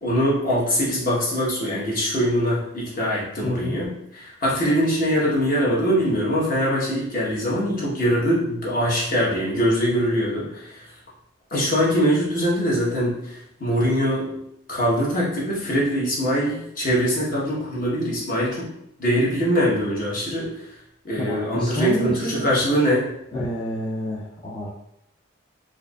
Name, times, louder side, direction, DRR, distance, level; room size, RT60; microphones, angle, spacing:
voice 1, 0.0-10.8 11.5-14.3 14.7-18.7 19.0-20.5 21.0-23.1, equal, 45° left, -6 dB, 1.2 m, -22 dB
voice 2, 3.4-3.8 21.2-22.5 23.3-24.7, equal, 25° left, -7 dB, 0.5 m, -28 dB
4.6 x 2.5 x 2.4 m, 0.77 s
head